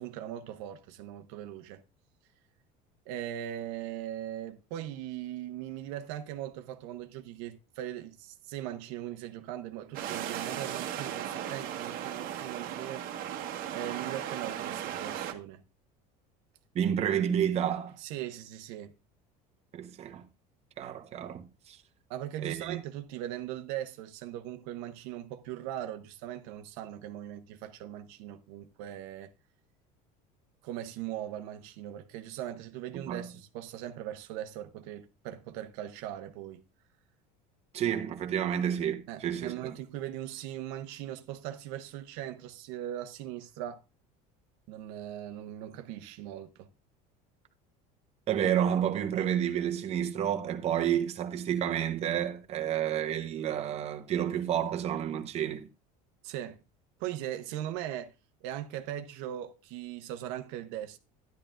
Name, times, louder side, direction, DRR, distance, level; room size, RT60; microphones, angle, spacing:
voice 1, 0.0-1.8 3.1-13.4 13.7-15.6 18.0-18.9 22.1-29.3 30.6-36.6 39.1-43.8 44.7-46.7 56.2-56.6 57.0-58.1 58.4-61.0, right 12 dB, 75° right, 0.8 m, -39 dB
sound 1, 9.9-15.3, right 10 dB, 55° right, 1.2 m, -36 dB
voice 2, 16.7-18.0 19.7-20.2 20.8-21.8 22.4-22.8 32.9-33.3 37.7-39.8 48.3-55.7, right 9 dB, 35° right, 1.0 m, -30 dB
10.5 x 10.5 x 2.5 m
cardioid pair, 135°, 18 cm